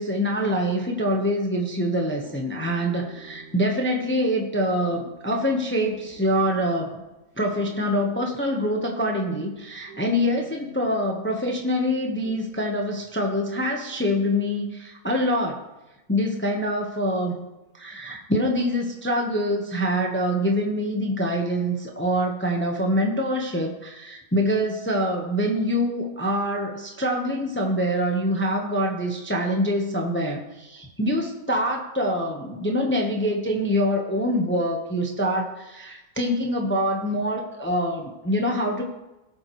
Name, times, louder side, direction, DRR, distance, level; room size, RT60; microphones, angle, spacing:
voice 1, 0.0-7.0 7.4-15.6 16.1-17.5 17.7-38.8, equal, 10° left, 1 dB, 1.0 m, -25 dB
sound 1, 2.2-11.2 11.9-13.3, right 1 dB, 85° right, 3.6 m, -49 dB
18.5 x 7.4 x 3.2 m, 1.0 s
omnidirectional pair, 1.6 m